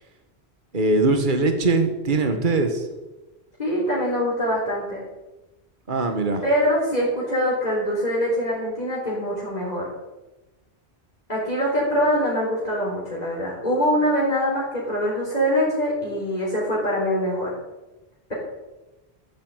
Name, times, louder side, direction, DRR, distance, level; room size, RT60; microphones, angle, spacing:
voice 1, 0.7-2.9 5.9-6.4, right 3 dB, 50° right, 6 dB, 1.7 m, -21 dB
voice 2, 3.6-5.0 6.4-9.9 11.3-17.5, equal, 40° left, -6 dB, 4.1 m, -23 dB
14.0 x 8.4 x 8.0 m, 1.1 s
omnidirectional pair, 1.1 m